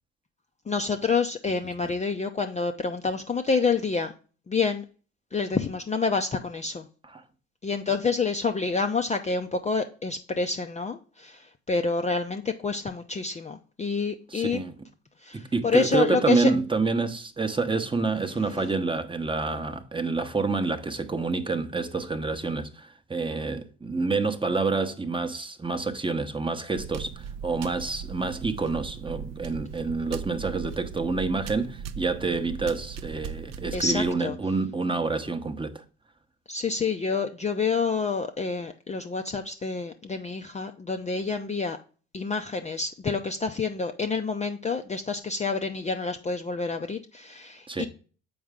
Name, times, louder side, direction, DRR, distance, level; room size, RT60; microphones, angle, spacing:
voice 1, 0.7-4.1 4.5-4.8 5.3-6.9 7.6-14.6 15.2-16.5 18.4-18.7 33.7-34.4 36.5-41.8 42.1-47.9, left 4 dB, 20° left, 0.5 m, -28 dB
voice 2, 14.3-14.7 15.3-35.8 47.7-47.9, right 3 dB, 15° right, 0.9 m, -28 dB
sound 1, 26.8-34.1, right 7 dB, 45° right, 0.6 m, -39 dB
7.1 x 4.7 x 3.6 m
hypercardioid pair, 60°, 36 cm